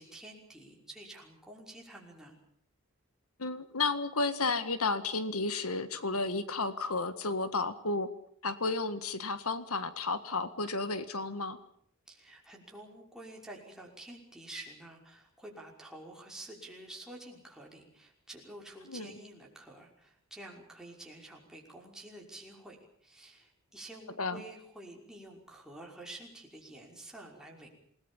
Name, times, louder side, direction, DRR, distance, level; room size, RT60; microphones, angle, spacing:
voice 1, 0.0-2.4 12.1-27.7, right 1 dB, 5° right, -1 dB, 5.7 m, -49 dB
voice 2, 3.4-8.1 8.4-11.6 18.9-19.1 24.2-24.4, left 3 dB, 80° left, 11 dB, 1.7 m, -32 dB
27.5 x 20.0 x 7.2 m, 0.66 s
head